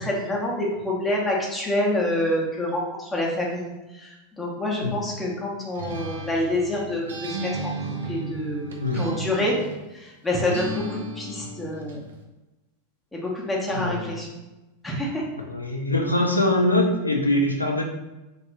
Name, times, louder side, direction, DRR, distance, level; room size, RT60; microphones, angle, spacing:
voice 1, 0.0-4.1 4.4-7.7 8.1-9.6 9.9-12.0 13.1-14.3 14.8-15.2, left 1 dB, 5° left, -3 dB, 0.8 m, -27 dB
Acoustic guitar, 5.7-9.9 10.5-12.0, right 2 dB, 65° right, 0.5 m, -34 dB
voice 2, 8.8-9.3 13.7-14.1 15.5-17.8, left 1 dB, 85° left, 1 dB, 0.4 m, -23 dB
3.1 x 2.5 x 3.0 m, 1.0 s
figure-of-eight pair, 90°, 0 cm